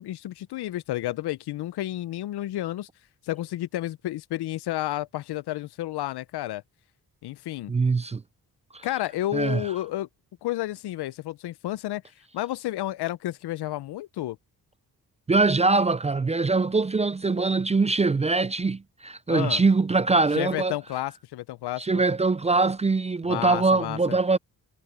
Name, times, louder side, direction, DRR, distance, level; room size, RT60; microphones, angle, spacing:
voice 1, 0.0-2.9 3.2-6.6 7.2-7.7 8.8-10.1 10.4-12.0 12.3-14.4 19.3-19.6 20.3-21.9 23.3-24.2, left 15 dB, 90° left, 0.5 m, -31 dB
voice 2, 7.7-8.2 8.7-8.9 9.3-9.6 15.3-20.8 21.8-24.4, right 3 dB, 20° right, 0.3 m, -23 dB
cardioid pair, 105°, 39 cm